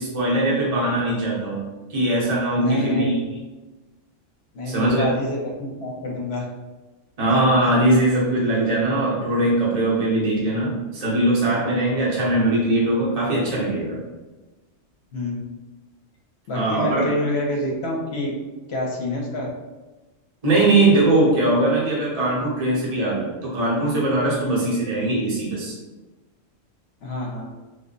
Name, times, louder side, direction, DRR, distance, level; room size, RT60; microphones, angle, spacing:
voice 1, 0.0-1.6 1.9-3.2 4.7-5.1 7.2-14.0 16.5-17.1 20.4-25.7, right 1 dB, 35° right, -6 dB, 0.9 m, -21 dB
voice 2, 2.5-3.2 4.5-6.5 11.8-11.9 15.1-15.4 16.5-18.3 18.7-19.5 24.4-24.6 27.0-27.5, equal, 60° left, -2 dB, 1.0 m, -27 dB
3.4 x 2.1 x 3.8 m, 1.2 s
omnidirectional pair, 1.3 m